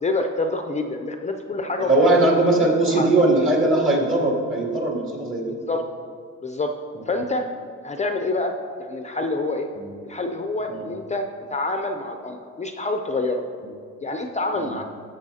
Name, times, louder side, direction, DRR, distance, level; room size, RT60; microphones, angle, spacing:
voice 1, 0.0-2.2 2.9-3.1 5.5-5.8 6.4-6.7 7.1-7.5 7.8-8.5 8.8-9.7 10.0-13.4 14.0-14.8, left 2 dB, 25° left, 5 dB, 0.5 m, -27 dB
voice 2, 1.8-5.5 6.9-7.0 9.8-9.9 10.7-10.9 14.5-14.7, right 2 dB, 45° right, -2 dB, 2.3 m, -20 dB
13.0 x 7.0 x 2.8 m, 2.2 s
cardioid pair, 90°, 30 cm